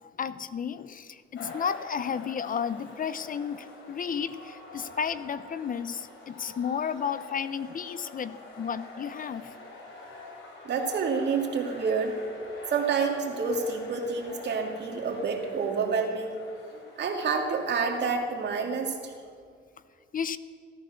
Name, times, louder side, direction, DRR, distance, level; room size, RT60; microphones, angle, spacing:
voice 1, 0.0-9.5 20.1-20.4, left 7 dB, 45° left, 15 dB, 0.7 m, -33 dB
sound 1, 1.3-19.0, left 2 dB, 75° left, 5.0 m, -46 dB
voice 2, 10.6-12.1 12.7-16.4 17.0-19.1, right 5 dB, 60° right, 2 dB, 2.6 m, -28 dB
15.5 x 13.5 x 6.4 m, 2.1 s
cardioid pair, 90°, 20 cm